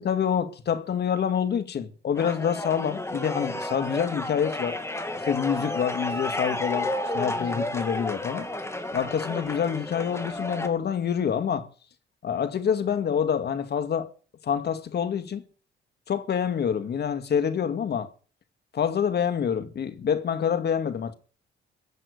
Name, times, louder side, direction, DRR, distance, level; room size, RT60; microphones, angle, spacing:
voice 1, 0.0-4.8 5.2-8.5 8.9-11.7 12.2-14.1 14.4-15.4 16.1-18.1 18.7-21.1, left 7 dB, 55° left, 2.1 m, -27 dB
sound 1, 2.2-10.7, left 1 dB, 15° left, 2.5 m, -32 dB
15.5 x 7.5 x 9.7 m
cardioid pair, 90°, 20 cm